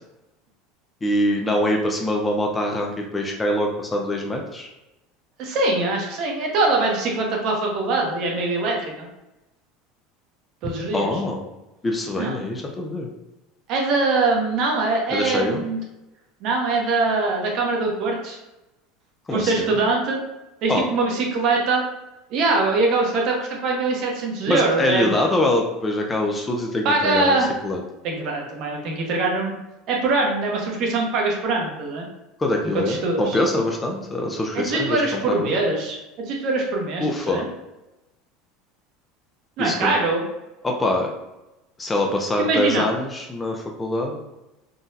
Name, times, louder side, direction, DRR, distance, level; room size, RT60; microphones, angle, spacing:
voice 1, 1.0-4.7 10.9-11.5 11.8-13.1 15.1-15.7 19.3-19.8 20.7-20.9 24.5-27.4 27.6-27.8 32.4-35.5 37.0-37.4 39.6-39.9 40.6-41.1 41.8-44.2, left 1 dB, 15° left, 1 dB, 0.4 m, -24 dB
voice 2, 5.4-9.1 10.6-11.1 12.1-12.4 13.7-15.8 16.4-18.4 19.3-20.2 20.6-21.8 22.3-25.1 26.8-27.5 28.0-29.6 29.9-32.1 32.9-33.2 34.5-36.0 36.3-37.4 39.6-40.2 42.4-42.8, right 3 dB, 55° right, 0 dB, 0.8 m, -23 dB
3.8 x 2.2 x 2.6 m, 0.96 s
supercardioid pair, 130°, 0 cm